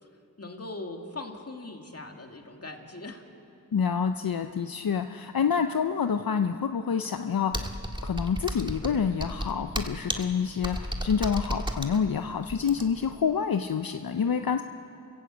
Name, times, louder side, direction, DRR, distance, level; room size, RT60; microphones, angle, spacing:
voice 1, 0.4-3.2, left 2 dB, 40° left, 3 dB, 2.4 m, -40 dB
voice 2, 3.7-7.7 8.0-14.6, left 6 dB, 75° left, 8 dB, 0.7 m, -27 dB
Computer keyboard, 7.5-13.1, equal, 15° right, 1.8 m, -33 dB
29.5 x 15.5 x 8.2 m, 2.8 s
wide cardioid pair, 50°, 36 cm